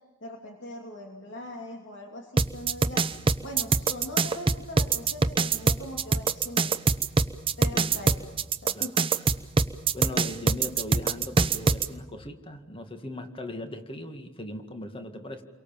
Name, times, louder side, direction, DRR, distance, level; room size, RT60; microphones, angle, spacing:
voice 1, 0.2-3.0 3.4-6.8 7.6-8.2 8.6-9.1, left 1 dB, 55° left, 1 dB, 2.9 m, -41 dB
sound 1, 2.4-11.9, right 4 dB, 25° right, 0.8 m, -24 dB
voice 2, 9.9-15.4, left 1 dB, 25° left, 6 dB, 2.1 m, -39 dB
30.0 x 23.5 x 7.3 m, 1.2 s
head